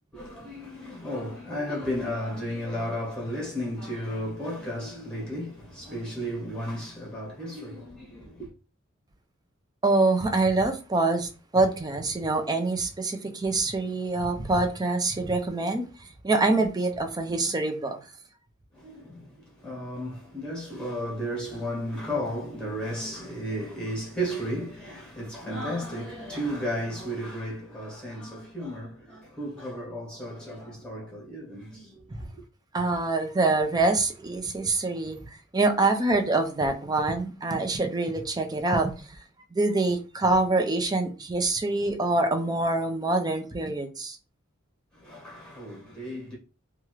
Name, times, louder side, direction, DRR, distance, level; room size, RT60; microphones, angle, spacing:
voice 1, 0.1-8.5 18.7-32.4 44.9-46.4, equal, 5° left, 1.2 m, -34 dB
voice 2, 9.8-15.9 16.2-18.0 32.7-35.2 35.5-38.9 39.5-44.2, right 2 dB, 20° right, 0.5 m, -25 dB
2.9 x 2.4 x 3.0 m
head